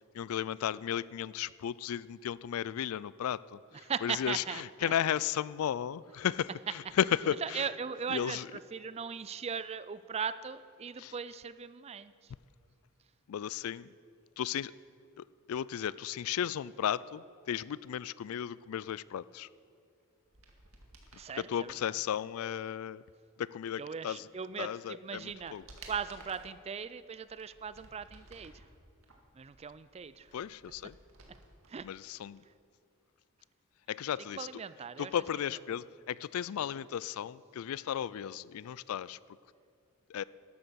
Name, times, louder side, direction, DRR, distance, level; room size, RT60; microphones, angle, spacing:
voice 1, 0.1-3.6 4.0-7.7 8.1-8.5 11.0-11.1 13.3-13.9 14.4-14.7 15.2-19.5 21.3-23.0 23.4-24.3 24.6-25.6 30.3-31.0 31.8-32.4 33.9-34.5 35.0-39.2 40.1-40.2, left 9 dB, 75° left, 20 dB, 0.3 m, -34 dB
voice 2, 3.8-4.9 7.4-12.1 21.2-22.0 23.8-25.6 25.9-28.5 29.3-30.3 31.7-31.9 34.3-35.1, right 6 dB, 30° right, 15 dB, 0.4 m, -39 dB
sound 1, 20.2-21.3 24.3-24.4 24.9-26.6 27.2-28.6 29.0-31.7 32.0-32.1, right 2 dB, 75° right, 2.0 m, -55 dB
12.5 x 11.5 x 6.3 m, 2.3 s
head